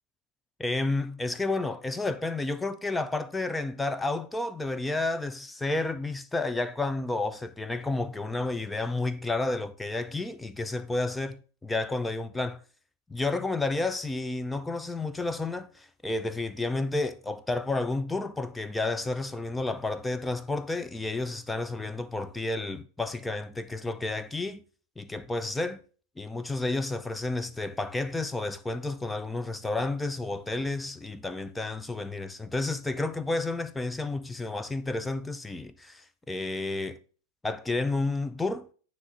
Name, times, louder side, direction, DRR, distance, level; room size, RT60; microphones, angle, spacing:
voice 1, 0.6-12.6 13.1-24.6 25.0-25.8 26.2-37.0 37.4-38.7, left 2 dB, 10° left, 0.4 m, -31 dB
9.5 x 3.2 x 3.8 m
figure-of-eight pair, 90°, 0 cm